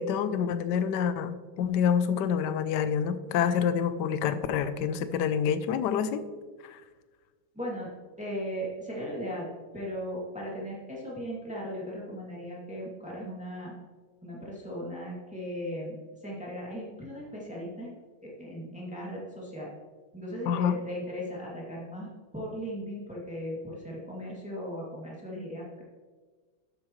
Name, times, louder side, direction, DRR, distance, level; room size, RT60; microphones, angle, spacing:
voice 1, 0.0-6.2 6.6-6.8 20.5-20.8, left 7 dB, 70° left, 11 dB, 1.1 m, -27 dB
voice 2, 7.5-7.9 8.2-9.5 9.7-13.7 14.2-16.0 16.2-17.9 18.2-19.7 20.1-25.8, equal, 5° right, -5 dB, 2.3 m, -37 dB
11.5 x 8.5 x 3.2 m, 1.4 s
omnidirectional pair, 2.3 m